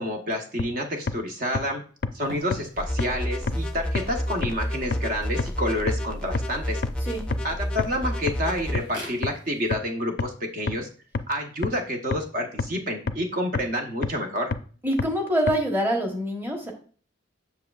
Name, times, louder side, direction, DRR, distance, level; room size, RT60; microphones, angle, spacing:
voice 1, 0.0-1.8 2.1-6.8 7.4-10.9 11.3-14.5, equal, 50° right, 2 dB, 1.0 m, -29 dB
sound 1, 0.6-0.7 1.1-1.2 1.5-1.6 2.0-2.1 2.5-2.6 3.0-3.1 3.5-3.6 3.9-4.0 4.4-4.5 4.9-5.0 5.4-5.5 5.9-6.0 6.3-6.4 6.8-6.9 7.3-7.4 7.8-7.9 8.3-8.4 8.7-8.8 9.2-9.3 9.7-9.8 10.2-10.3 10.7-10.8 11.1-11.2 11.6-11.7 12.1-12.2 12.6-12.7 13.1-13.2 13.5-13.6 14.0-14.1 14.5-14.6 15.0-15.1 15.5-15.6, left 4 dB, 55° left, 0.4 m, -25 dB
sound 2, 2.2-9.8, right 1 dB, 70° right, 3.1 m, -48 dB
sound 3, 2.8-8.8, equal, 5° left, 0.5 m, -30 dB
voice 2, 14.8-16.7, equal, 10° right, 1 dB, 1.2 m, -25 dB
7.6 x 6.8 x 2.4 m, 0.42 s
head